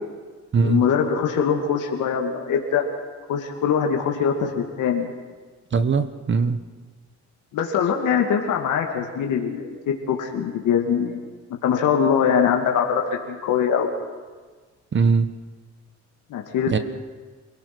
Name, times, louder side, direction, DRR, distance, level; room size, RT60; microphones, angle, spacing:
voice 1, 0.6-2.9 3.3-5.1 7.5-11.2 11.6-13.9 16.3-16.8, left 7 dB, 85° left, 1 dB, 2.5 m, -22 dB
voice 2, 5.7-6.6 14.9-15.3 16.7-16.8, right 5 dB, 40° right, 11 dB, 1.2 m, -20 dB
28.0 x 17.5 x 6.2 m, 1.4 s
cardioid pair, 90°, 30 cm